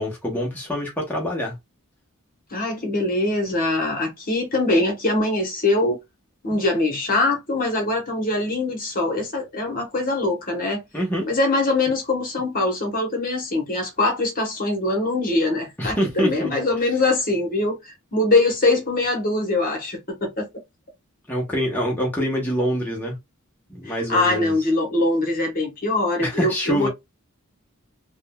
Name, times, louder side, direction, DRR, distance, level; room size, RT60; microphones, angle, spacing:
voice 1, 0.0-1.6 6.5-6.6 10.9-11.3 15.8-16.5 21.3-23.2 23.7-24.6 26.2-26.9, equal, 10° left, 0.8 m, -25 dB
voice 2, 2.5-6.0 6.4-10.8 11.3-20.5 23.8-26.9, left 2 dB, 40° left, 1.0 m, -23 dB
3.6 x 2.2 x 2.2 m
head